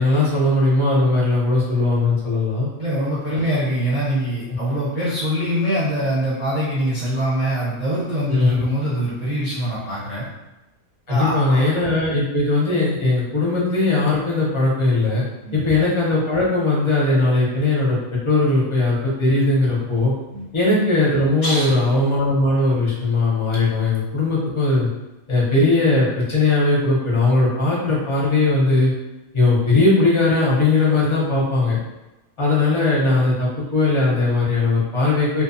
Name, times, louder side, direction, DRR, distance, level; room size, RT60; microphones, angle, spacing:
voice 1, 0.0-2.7 3.3-3.4 8.3-8.6 11.1-15.2 15.5-20.1 20.5-24.9 25.3-28.9 29.3-31.8 32.4-35.4, left 2 dB, 30° left, -6 dB, 0.5 m, -19 dB
voice 2, 2.8-10.3 11.1-11.7 15.4-15.7 20.3-20.5 21.4-21.7, equal, 35° right, -10 dB, 0.7 m, -23 dB
2.6 x 2.2 x 2.6 m, 1.0 s
omnidirectional pair, 1.5 m